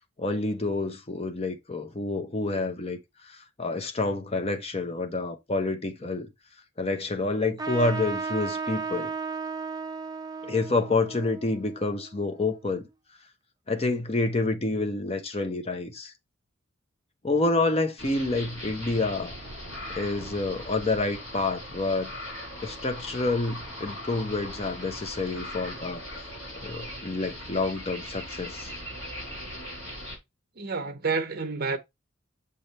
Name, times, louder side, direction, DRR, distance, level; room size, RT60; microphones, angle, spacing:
voice 1, 0.2-6.3 6.8-9.1 10.4-12.8 13.7-16.1 17.2-19.3 19.9-22.1 22.6-26.0 26.6-28.7, left 3 dB, 30° left, 0.8 m, -28 dB
Trumpet, 7.6-12.6, right 4 dB, 20° right, 0.5 m, -35 dB
sound 1, 18.0-30.2, equal, 65° left, 4.4 m, -39 dB
voice 2, 30.6-31.8, right 4 dB, 45° right, 0.8 m, -29 dB
6.9 x 3.3 x 4.1 m
head